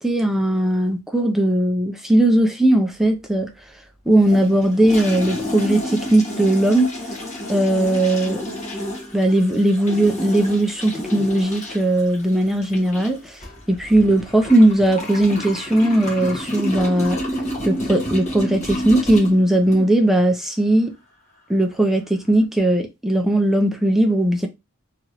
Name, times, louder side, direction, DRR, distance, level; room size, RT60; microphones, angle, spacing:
voice 1, 0.0-3.5 4.1-7.2 7.5-8.4 9.1-13.4 13.7-17.2 17.6-20.9 21.5-24.5, right 1 dB, ahead, 0.4 m, -18 dB
Thailand toilet flush crazy in large live bathroom, 4.2-20.1, equal, 35° left, 1.0 m, -30 dB
2.9 x 2.4 x 2.9 m
head